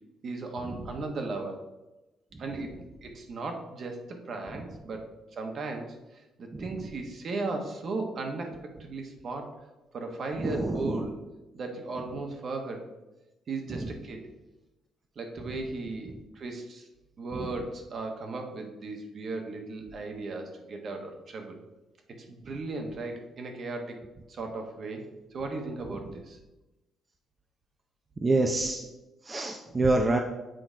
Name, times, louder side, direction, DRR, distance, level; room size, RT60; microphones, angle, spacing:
voice 1, 0.2-1.6 2.4-9.6 9.9-11.1 11.5-12.9 13.5-14.2 15.2-16.9 17.2-21.6 22.1-24.0 24.3-25.0 25.3-26.4, right 3 dB, 55° right, 3 dB, 1.1 m, -36 dB
voice 2, 10.4-11.1 13.7-13.9 17.3-17.5 28.2-28.9 29.2-30.2, right 2 dB, 25° right, 2 dB, 0.5 m, -27 dB
7.7 x 3.0 x 4.9 m, 1.0 s
cardioid pair, 90°, 0 cm